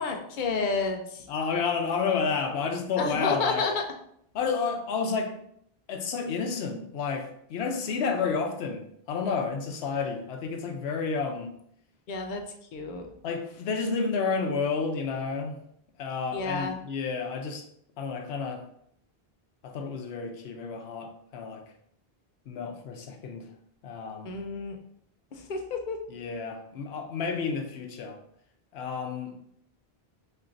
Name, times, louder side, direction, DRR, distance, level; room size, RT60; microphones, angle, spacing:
voice 1, 0.0-1.3 3.0-3.8 12.1-12.4 12.7-13.1 16.3-16.8 24.2-24.8 25.3-26.0, left 4 dB, 55° left, 3 dB, 0.7 m, -30 dB
voice 2, 1.3-3.6 4.3-5.3 5.9-11.5 13.2-15.6 16.0-17.6 18.0-18.6 19.6-21.6 22.5-23.5 23.8-24.3 26.1-28.2 28.7-29.3, left 5 dB, 85° left, 4 dB, 0.9 m, -30 dB
4.4 x 3.0 x 2.5 m, 0.70 s
omnidirectional pair, 1.0 m